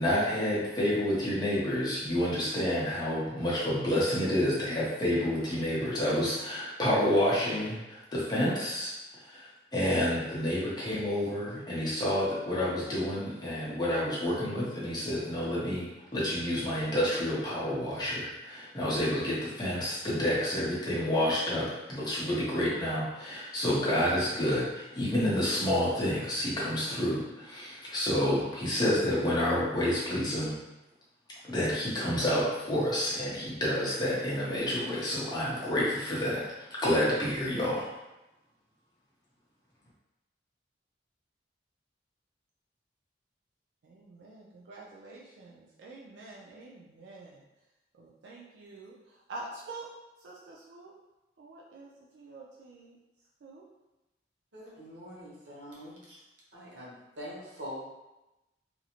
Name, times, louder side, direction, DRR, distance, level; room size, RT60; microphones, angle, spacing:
voice 1, 0.0-30.5 31.4-37.9, left 1 dB, 25° left, -7 dB, 0.7 m, -29 dB
voice 2, 43.8-47.4 48.0-49.9 50.2-50.9 51.4-53.0 53.4-53.7, right 2 dB, 75° right, -3 dB, 0.4 m, -47 dB
voice 3, 54.5-56.2 56.5-57.8, equal, 90° right, -6 dB, 0.9 m, -44 dB
2.5 x 2.0 x 2.8 m, 0.99 s
head